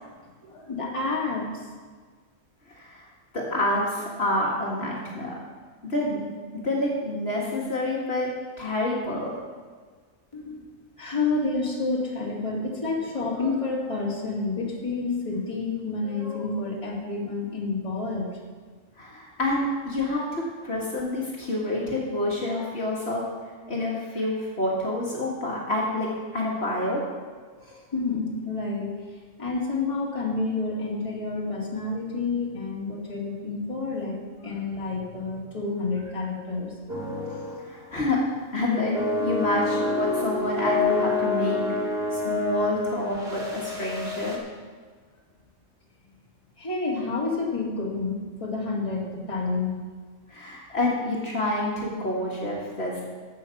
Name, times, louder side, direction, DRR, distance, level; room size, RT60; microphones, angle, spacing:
voice 1, 0.4-1.7 10.3-10.7 11.0-18.3 27.6-29.0 29.4-36.7 46.6-49.8, left 3 dB, 25° left, -3 dB, 2.0 m, -29 dB
voice 2, 2.7-3.1 3.3-5.4 5.8-6.2 6.5-8.3 8.6-9.3 19.0-23.2 23.7-27.0 37.7-38.3 38.5-44.4 50.3-53.1, left 1 dB, 55° left, -3 dB, 1.9 m, -28 dB
sound 1, 36.9-37.7 38.0-38.2 38.9-44.4, left 3 dB, 50° right, 1.8 m, -27 dB
14.5 x 5.7 x 5.8 m, 1.6 s
omnidirectional pair, 1.3 m